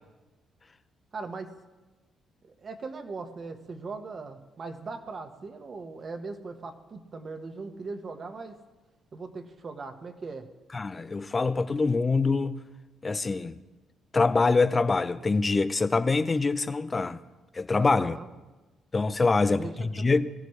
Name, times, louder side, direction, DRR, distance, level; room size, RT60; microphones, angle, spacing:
voice 1, 1.1-1.5 2.4-8.6 9.1-10.5 17.8-18.3 19.4-19.7 20.1-20.2, right 4 dB, 45° right, 1.4 m, -39 dB
voice 2, 10.7-12.6 13.0-13.6 14.1-17.2 17.5-18.2 18.9-20.3, left 3 dB, 30° left, 0.6 m, -25 dB
21.5 x 14.5 x 3.3 m
cardioid pair, 90°, 0 cm